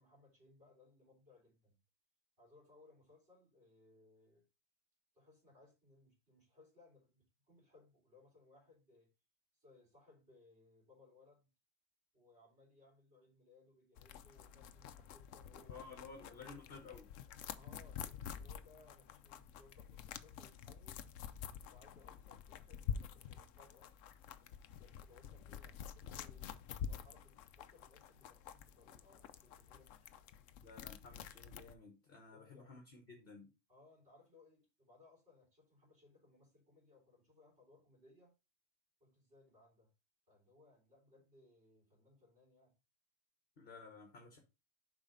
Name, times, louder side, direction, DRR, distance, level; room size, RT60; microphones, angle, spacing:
voice 1, 0.0-1.8 2.4-4.4 5.1-9.1 9.5-11.5 12.1-15.8 16.1-16.5 17.6-21.1 21.7-23.9 24.8-30.1 32.3-32.7 33.7-38.3 39.0-39.9 40.3-42.8, left 2 dB, 45° right, 3.8 m, -66 dB
sound 1, 14.0-31.7, left 8 dB, 80° left, 1.0 m, -48 dB
voice 2, 15.7-17.1 30.6-33.5 43.6-44.4, left 4 dB, 45° left, 1.4 m, -54 dB
7.1 x 5.0 x 3.8 m
omnidirectional pair, 1.3 m